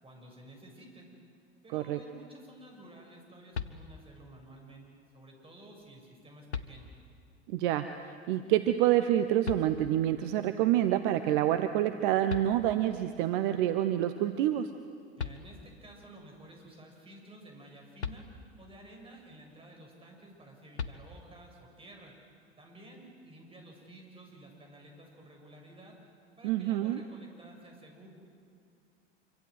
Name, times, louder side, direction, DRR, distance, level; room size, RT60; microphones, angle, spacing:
voice 1, 0.0-1.1 1.6-4.9 5.1-6.9 15.2-22.1 22.6-26.0 26.4-28.1, right 1 dB, 15° right, 1 dB, 7.0 m, -52 dB
sound 1, 3.5-4.3 5.8-5.9 6.5-7.3 9.4-10.2 12.0-12.1 12.3-13.1 14.8-14.9 15.2-15.9 18.0-18.8 20.8-21.5, left 6 dB, 80° left, 1.1 m, -40 dB
voice 2, 7.5-14.7 26.4-27.0, right 12 dB, 50° right, 10 dB, 1.0 m, -27 dB
26.5 x 25.0 x 8.0 m, 2.3 s
figure-of-eight pair, 80°, 33 cm